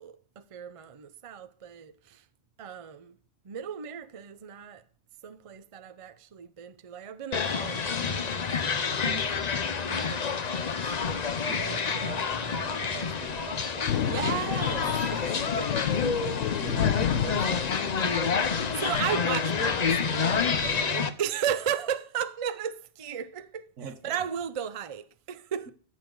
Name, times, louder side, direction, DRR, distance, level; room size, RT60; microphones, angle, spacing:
voice 1, 0.0-2.2 2.6-3.2 3.4-4.8 5.2-8.6 9.0-9.5 9.9-11.3 14.1-15.9 18.5-20.3 20.7-25.7, right 9 dB, 40° right, 0.5 m, -35 dB
sound 1, 7.3-21.1, left 5 dB, 40° left, 0.7 m, -28 dB
voice 2, 11.5-14.3 14.8-15.0 15.9-17.7 20.6-20.9 23.8-24.2, right 4 dB, 85° right, 1.5 m, -42 dB
Thunder, 13.9-20.8, left 9 dB, 80° left, 1.1 m, -32 dB
13.5 x 7.6 x 3.9 m
omnidirectional pair, 1.3 m